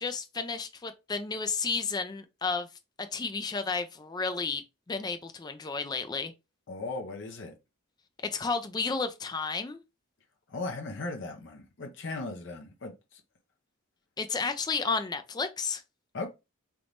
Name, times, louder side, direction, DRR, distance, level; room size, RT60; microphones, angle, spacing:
voice 1, 0.0-2.7 3.0-4.6 4.9-6.3 8.2-9.8 14.2-15.8, left 4 dB, 20° left, 0.3 m, -32 dB
voice 2, 6.7-7.5 10.5-13.2 16.1-16.3, left 3 dB, 55° left, 0.7 m, -37 dB
3.4 x 3.0 x 2.5 m
head